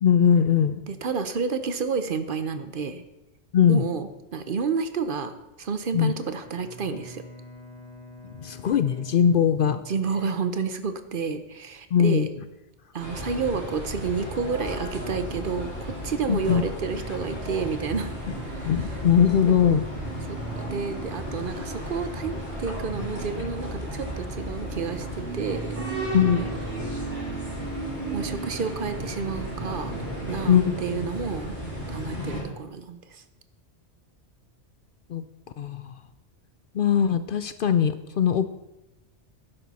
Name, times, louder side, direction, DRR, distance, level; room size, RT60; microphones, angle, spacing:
voice 1, 0.0-0.8 3.5-3.8 5.9-6.1 8.4-9.8 11.9-12.3 16.3-16.6 18.6-19.9 26.1-26.5 30.5-30.7 35.1-35.2 35.6-36.0 36.7-38.5, left 8 dB, 60° left, 12 dB, 0.6 m, -21 dB
voice 2, 0.9-3.0 3.7-7.2 9.9-12.3 12.9-18.1 18.4-19.0 19.5-19.8 20.3-25.9 28.1-30.0 30.3-31.6 31.9-33.2, right 5 dB, 55° right, 10 dB, 0.9 m, -30 dB
Bowed string instrument, 6.2-10.4, left 1 dB, 40° left, 1.9 m, -46 dB
sound 1, 13.0-32.4, right 1 dB, 90° right, 4.6 m, -33 dB
12.0 x 10.0 x 4.1 m, 0.92 s
omnidirectional pair, 1.1 m